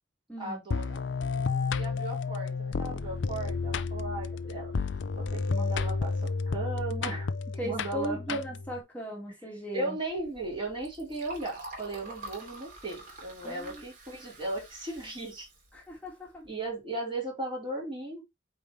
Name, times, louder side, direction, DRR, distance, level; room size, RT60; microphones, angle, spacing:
voice 1, 0.4-1.0 1.7-4.7 5.2-8.4 9.4-15.5 16.4-18.2, right 2 dB, 25° right, 3.9 m, -37 dB
sound 1, 0.7-8.8, left 4 dB, 80° left, 0.5 m, -31 dB
voice 2, 7.6-10.0 13.4-13.8 15.9-16.4, right 1 dB, 10° left, 1.9 m, -37 dB
Liquid, 10.0-16.7, right 2 dB, 45° right, 2.7 m, -48 dB
8.7 x 3.9 x 3.1 m
head